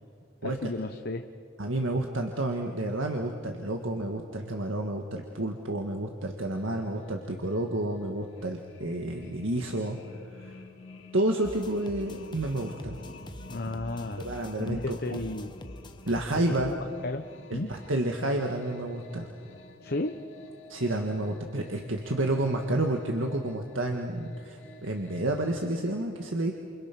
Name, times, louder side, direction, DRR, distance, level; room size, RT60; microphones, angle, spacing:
voice 1, 0.4-1.2 13.5-14.3 14.6-15.5 16.3-16.7 17.0-17.2 17.5-17.7 19.8-20.2, left 2 dB, 50° left, 7 dB, 0.9 m, -33 dB
voice 2, 1.6-10.0 10.4-10.6 11.1-13.0 14.2-15.2 16.1-16.7 17.5-19.3 20.7-26.5, right 1 dB, 70° right, 3 dB, 1.8 m, -30 dB
sound 1, 6.4-25.9, left 1 dB, 65° left, 2.9 m, -50 dB
sound 2, 11.4-16.7, left 1 dB, 20° left, 1.1 m, -45 dB
29.0 x 28.5 x 6.1 m, 2.4 s
head